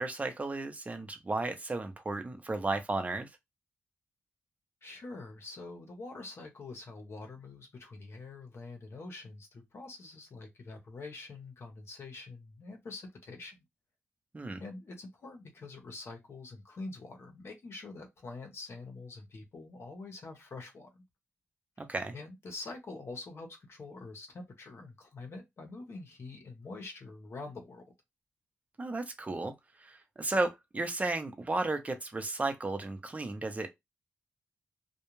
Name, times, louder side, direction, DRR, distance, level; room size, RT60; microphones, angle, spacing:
voice 1, 0.0-3.3 14.3-14.6 21.8-22.1 28.8-29.5 29.8-33.7, right 2 dB, 30° right, 0.7 m, -34 dB
voice 2, 4.8-13.6 14.6-21.0 22.1-27.8, left 3 dB, 60° left, 0.8 m, -45 dB
2.4 x 2.2 x 3.0 m
cardioid pair, 55°, 5 cm